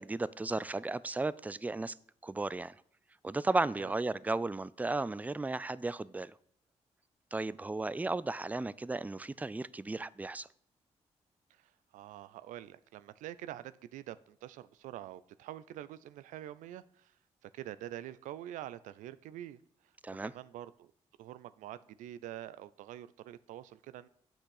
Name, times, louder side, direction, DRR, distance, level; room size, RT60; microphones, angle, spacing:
voice 1, 0.0-2.0 2.2-2.8 3.2-6.3 7.3-10.5 20.0-20.3, right 3 dB, 10° right, 19 dB, 0.4 m, -34 dB
voice 2, 11.5-17.1 17.4-19.6 20.2-20.9 21.2-24.1, right 12 dB, 85° right, 15 dB, 0.4 m, -46 dB
7.9 x 6.2 x 6.5 m, 0.63 s
supercardioid pair, 55°, 13 cm